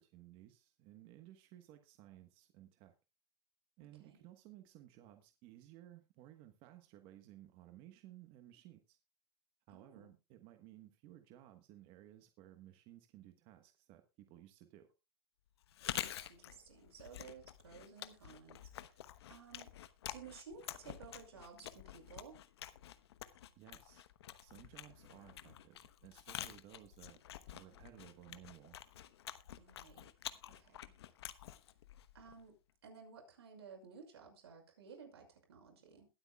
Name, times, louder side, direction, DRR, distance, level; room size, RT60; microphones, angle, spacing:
voice 1, 0.0-2.9 3.8-9.0 9.7-14.9 23.6-24.0 24.4-25.7 26.0-27.2 27.5-28.8, right 13 dB, 45° right, 6 dB, 1.3 m, -58 dB
voice 2, 3.8-4.2 9.7-10.1 15.8-19.7 20.1-22.4 29.6-30.1 30.4-30.9 32.1-32.5 32.8-36.1, right 6 dB, 90° right, 3 dB, 5.9 m, -56 dB
Chewing mastication, 15.6-32.5, left 11 dB, 85° left, 1.0 m, -49 dB
22.0 x 8.4 x 2.3 m, 0.27 s
supercardioid pair, 140°, 13 cm